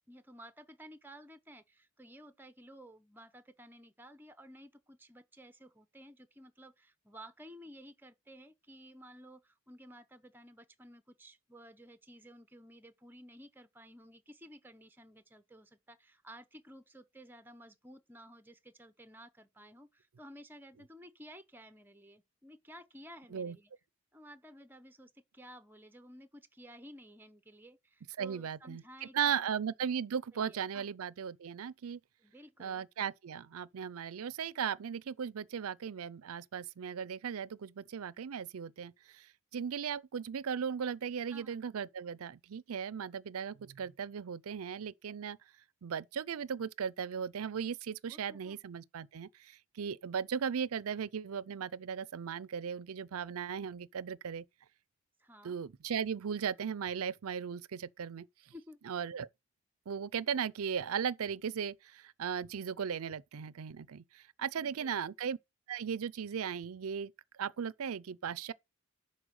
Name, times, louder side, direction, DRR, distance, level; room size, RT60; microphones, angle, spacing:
voice 1, 0.1-23.7 24.1-29.5 30.3-30.9 32.2-32.9 41.3-41.6 48.1-48.6 55.2-55.6 58.5-58.8 64.6-65.0, equal, 10° right, 0.7 m, -54 dB
voice 2, 28.2-32.0 32.6-45.4 45.8-54.4 55.4-58.5 58.9-59.3 59.9-65.4 65.7-68.5, right 7 dB, 75° right, 0.5 m, -37 dB
11.0 x 4.3 x 6.4 m
head